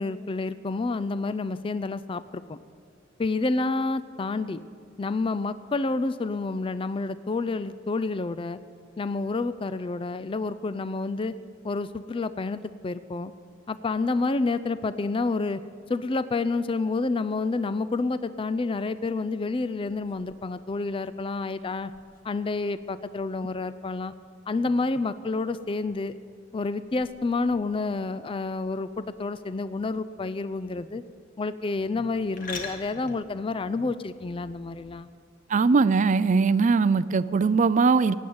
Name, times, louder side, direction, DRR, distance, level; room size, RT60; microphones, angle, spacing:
voice 1, 0.0-2.6 3.2-4.6 5.0-8.6 9.0-11.4 11.6-13.3 13.7-15.6 15.9-21.9 22.2-24.1 24.5-26.1 26.5-31.0 31.4-35.1, left 3 dB, 30° left, 14 dB, 0.4 m, -29 dB
sound 1, 19.8-34.9, left 4 dB, 45° left, 1.6 m, -48 dB
voice 2, 35.5-38.1, right 4 dB, 40° right, 16 dB, 0.4 m, -21 dB
16.0 x 9.2 x 8.7 m, 2.2 s
head